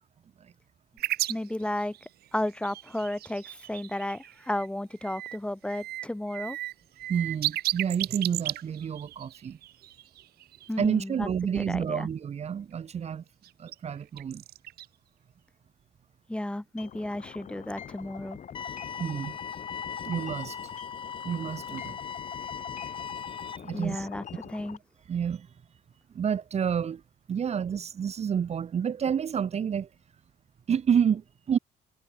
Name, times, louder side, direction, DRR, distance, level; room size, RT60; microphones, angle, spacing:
sound 1, 1.0-4.7 5.0-5.4 5.7-10.9 13.4-13.7 14.2-14.8, right 15 dB, 65° right, 0.9 m, -35 dB
voice 1, 1.3-1.9 2.3-6.6 10.7-11.3 11.5-12.1 16.3-18.4 23.7-24.2 24.5-24.8, left 1 dB, 5° left, 1.9 m, -33 dB
voice 2, 7.1-9.6 10.8-13.2 13.6-14.4 19.0-19.4 20.0-20.6 21.2-22.0 23.3-24.1 25.1-25.5 26.1-27.0 27.3-29.9 30.7-31.6, right 7 dB, 40° right, 1.5 m, -29 dB
sound 2, 16.8-24.8, left 8 dB, 45° left, 6.0 m, -44 dB
sound 3, 18.5-23.6, left 7 dB, 30° left, 0.5 m, -39 dB
cardioid pair, 110°, 17 cm